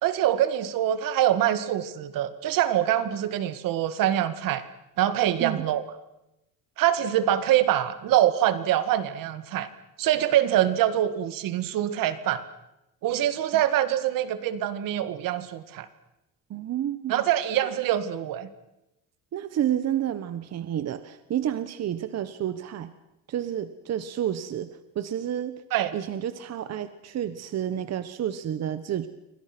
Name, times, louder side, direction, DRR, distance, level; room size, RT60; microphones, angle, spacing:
voice 1, 0.0-4.6 5.0-5.8 6.8-9.7 10.0-12.4 13.0-15.9 17.1-18.5 25.7-25.9, right 12 dB, 70° right, 13 dB, 2.0 m, -24 dB
voice 2, 16.5-17.2 19.3-22.9 23.3-25.6 25.9-29.1, right 10 dB, 50° right, 12 dB, 1.3 m, -30 dB
28.5 x 24.5 x 6.1 m, 0.90 s
cardioid pair, 125°, 35 cm